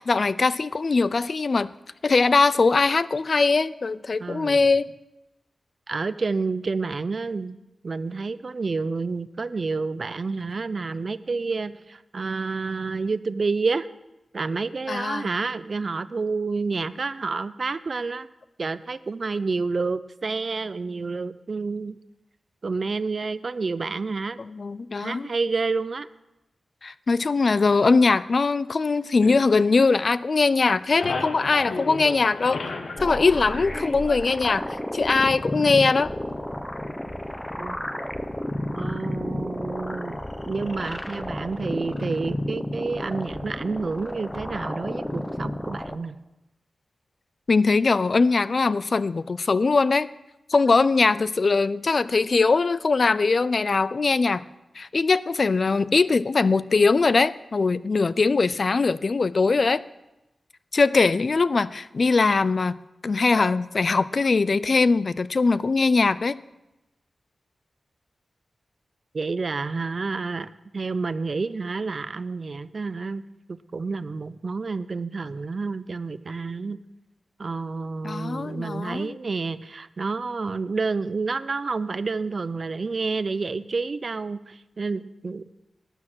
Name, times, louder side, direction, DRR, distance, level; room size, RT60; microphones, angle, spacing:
voice 1, 0.0-1.7 2.0-4.9 14.9-15.3 24.4-25.3 26.8-32.6 33.0-34.6 34.9-36.1 47.5-50.1 50.5-54.4 54.8-59.8 60.7-62.8 63.0-66.4 78.0-79.2, left 4 dB, 45° left, 17 dB, 0.3 m, -21 dB
voice 2, 4.2-4.6 5.9-7.6 7.8-13.9 14.3-18.3 18.6-22.0 22.6-24.4 25.0-26.1 37.6-37.8 38.8-46.2 69.1-73.2 73.5-76.8 77.4-85.5, right 4 dB, 45° right, 15 dB, 0.5 m, -29 dB
sound 1, 29.2-30.3 30.6-34.3, left 3 dB, 75° left, 1.2 m, -34 dB
sound 2, 33.0-46.0, left 1 dB, 10° left, 0.7 m, -32 dB
12.0 x 9.9 x 6.1 m, 0.96 s
wide cardioid pair, 125°, 0 cm